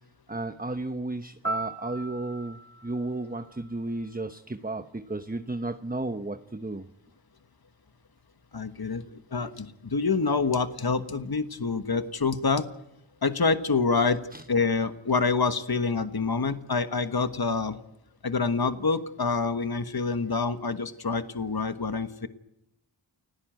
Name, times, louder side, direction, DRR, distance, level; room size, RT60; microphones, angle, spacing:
voice 1, 0.3-6.8 14.3-14.4, right 2 dB, 20° right, 8 dB, 1.0 m, -33 dB
Piano, 1.4-4.4 12.5-12.7, right 2 dB, 5° left, 4.6 m, -38 dB
voice 2, 8.5-12.7 13.2-14.2 14.5-17.8 18.2-22.3, left 4 dB, 50° left, 9 dB, 1.4 m, -27 dB
30.0 x 17.0 x 9.1 m, 0.85 s
wide cardioid pair, 55°, 47 cm